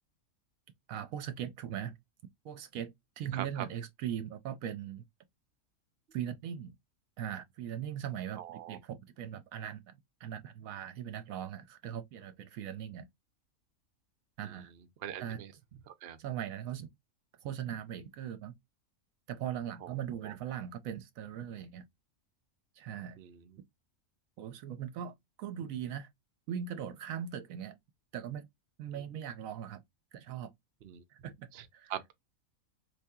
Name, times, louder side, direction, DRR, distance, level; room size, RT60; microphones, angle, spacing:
voice 1, 0.9-2.0 2.4-5.1 6.1-6.7 7.2-8.4 8.7-9.9 10.2-13.1 14.4-14.7 15.2-15.4 16.2-16.9 17.4-18.6 19.3-21.8 22.8-23.2 24.4-26.1 26.5-27.8 28.1-28.5 28.8-29.8 30.1-30.5 31.1-31.9, right 9 dB, 75° right, 1.0 m, -39 dB
voice 2, 3.3-3.7 8.4-8.8 14.4-14.7 15.0-15.5 15.9-16.2 19.8-20.3 23.2-23.6 30.8-31.0 31.5-32.1, right 10 dB, 55° right, 0.8 m, -43 dB
4.6 x 2.7 x 2.3 m
omnidirectional pair, 1.5 m